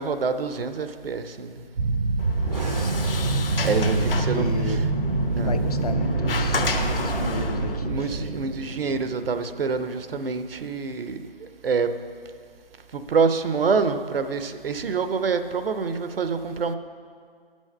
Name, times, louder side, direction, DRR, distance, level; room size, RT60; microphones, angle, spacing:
voice 1, 0.0-1.6 3.6-4.9 5.4-5.6 7.8-11.9 12.9-16.7, right 5 dB, 70° right, 9 dB, 0.7 m, -26 dB
sound 1, 1.8-9.5, right 3 dB, 40° right, 0.5 m, -26 dB
Sliding door, 2.2-7.8, left 4 dB, 65° left, 1.0 m, -32 dB
voice 2, 2.4-3.0 3.7-4.8 5.4-8.3, left 4 dB, 40° left, 9 dB, 0.4 m, -34 dB
11.5 x 6.3 x 5.6 m, 2.1 s
figure-of-eight pair, 150°, 30 cm